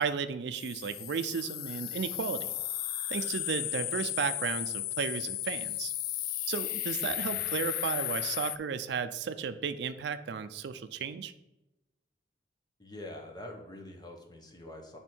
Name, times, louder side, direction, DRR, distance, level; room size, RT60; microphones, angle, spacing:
voice 1, 0.0-2.5 3.1-5.9 6.5-11.3, right 6 dB, 70° right, 11 dB, 0.4 m, -34 dB
sound 1, 0.5-8.6, left 14 dB, 55° left, 0.3 m, -35 dB
voice 2, 7.0-7.4 12.8-15.0, left 1 dB, 25° left, 2 dB, 1.0 m, -45 dB
8.0 x 3.5 x 4.4 m, 0.95 s
head